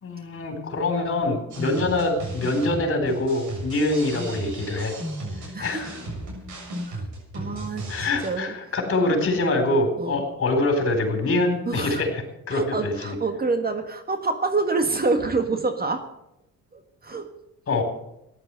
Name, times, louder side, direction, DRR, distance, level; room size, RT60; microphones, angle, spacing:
voice 1, 0.0-5.0 5.6-5.9 7.9-13.2 17.7-17.8, left 2 dB, 45° left, 5 dB, 4.3 m, -24 dB
sound 1, 1.5-8.3, right 1 dB, 75° right, 7.3 m, -35 dB
voice 2, 5.5-5.8 6.9-7.0 7.3-8.7 10.0-10.2 11.7-12.0 12.5-16.0 16.7-17.3, right 3 dB, 30° right, 7 dB, 1.7 m, -27 dB
14.0 x 11.0 x 7.7 m, 0.83 s
cardioid pair, 90°, 30 cm